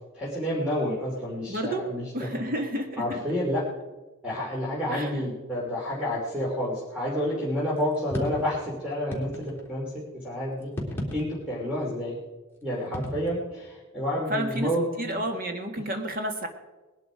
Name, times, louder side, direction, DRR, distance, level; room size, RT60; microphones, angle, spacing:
voice 1, 0.1-2.4 3.0-3.6 4.2-10.7 11.1-12.2 12.6-15.3, equal, 5° right, -6 dB, 2.9 m, -29 dB
voice 2, 1.5-1.8 2.1-3.2 4.9-5.1 14.3-14.7 15.0-16.5, equal, 45° right, 5 dB, 2.0 m, -30 dB
sound 1, 7.8-8.5 9.1-9.8 10.6-11.6 12.9-13.3, left 1 dB, 10° left, 3.5 m, -34 dB
20.0 x 11.0 x 5.1 m, 1.2 s
head